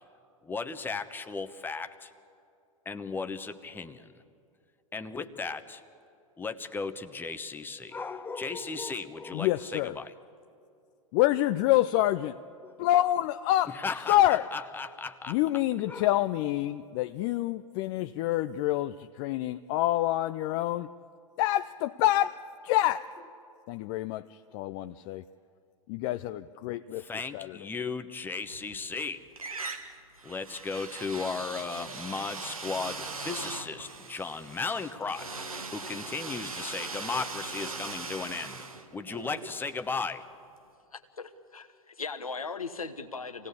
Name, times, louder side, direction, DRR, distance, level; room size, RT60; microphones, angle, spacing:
voice 1, 0.4-2.1 2.8-4.1 4.9-5.8 6.4-10.1 12.6-12.8 13.7-15.4 15.8-16.1 26.9-29.3 30.2-40.2, left 4 dB, 10° left, 9 dB, 1.0 m, -36 dB
voice 2, 9.3-9.9 11.1-12.3 12.8-13.7 14.1-14.5 15.3-20.9 21.4-22.4 22.6-23.1 23.7-24.2 24.5-25.2 25.9-27.0 27.3-27.5, left 14 dB, 40° left, 11 dB, 0.5 m, -27 dB
sound 1, 28.4-29.0 29.4-40.2, right 4 dB, 80° right, 1.7 m, -40 dB
voice 3, 40.9-43.5, left 4 dB, 85° left, 6 dB, 1.3 m, -38 dB
26.5 x 17.0 x 8.4 m, 2.5 s
figure-of-eight pair, 95°, 18 cm